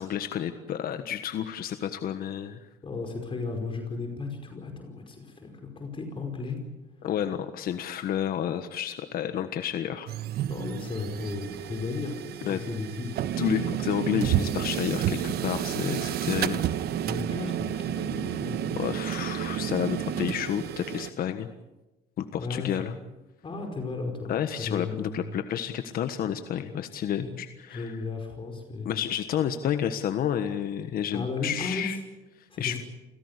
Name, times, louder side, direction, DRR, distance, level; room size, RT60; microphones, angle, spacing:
voice 1, 0.0-2.7 7.0-10.1 12.4-12.6 13.4-16.6 18.7-21.5 22.2-22.9 24.3-27.9 28.8-32.0 32.4-32.8, left 9 dB, 60° left, 9 dB, 1.5 m, -30 dB
voice 2, 2.8-6.6 10.5-13.1 17.0-18.6 22.4-22.7 23.4-24.3 24.6-25.2 27.2-27.4 27.7-28.9 31.1-31.9 32.5-32.8, left 3 dB, 30° left, 3 dB, 5.1 m, -34 dB
sound 1, 10.1-21.1, right 10 dB, 70° right, 1.3 m, -31 dB
28.5 x 17.0 x 8.3 m, 1.1 s
cardioid pair, 110°, 17 cm